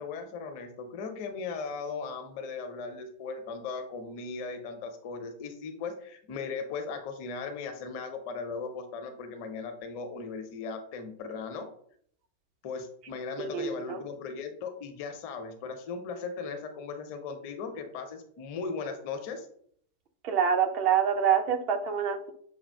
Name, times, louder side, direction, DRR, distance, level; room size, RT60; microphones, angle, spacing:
voice 1, 0.0-11.7 12.6-19.5, left 4 dB, 45° left, 6 dB, 0.6 m, -38 dB
voice 2, 13.4-14.0 20.2-22.3, right 8 dB, 40° right, 5 dB, 0.5 m, -26 dB
6.2 x 2.3 x 2.2 m, 0.62 s
figure-of-eight pair, 90°, 0 cm